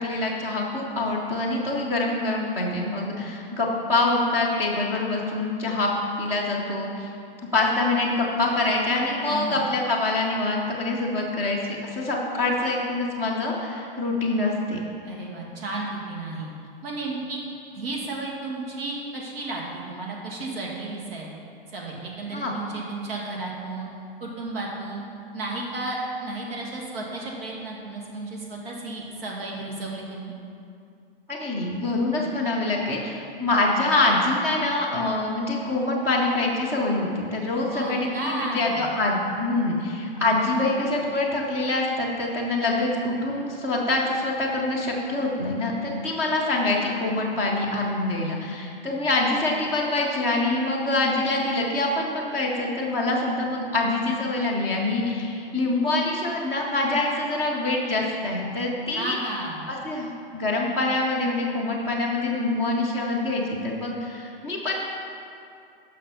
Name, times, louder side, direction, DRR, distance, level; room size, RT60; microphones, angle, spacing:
voice 1, 0.0-5.9 6.2-7.1 7.5-11.6 11.9-14.8 22.3-22.5 31.3-59.2 59.7-64.8, left 2 dB, 10° right, -5 dB, 0.5 m, -25 dB
voice 2, 9.3-9.6 15.0-16.5 16.8-17.4 17.7-21.3 21.7-23.9 24.2-25.0 25.3-30.3 37.7-38.9 58.9-59.7, right 2 dB, 80° right, -2 dB, 2.1 m, -33 dB
8.3 x 6.2 x 5.5 m, 2.5 s
supercardioid pair, 170°, 29 cm